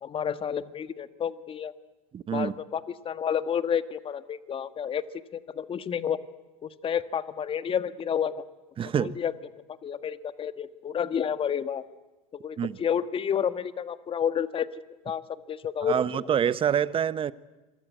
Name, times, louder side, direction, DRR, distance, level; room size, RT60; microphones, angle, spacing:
voice 1, 0.0-1.7 2.3-5.0 5.3-6.2 6.6-8.4 9.0-11.8 12.3-14.7 15.0-15.2 15.5-16.3, left 8 dB, 30° left, 13 dB, 1.6 m, -30 dB
voice 2, 2.1-2.5 8.8-9.2 12.6-12.8 15.8-17.3, right 8 dB, 30° right, 17 dB, 1.1 m, -26 dB
27.5 x 23.0 x 9.3 m, 1.1 s
hypercardioid pair, 100°, 18 cm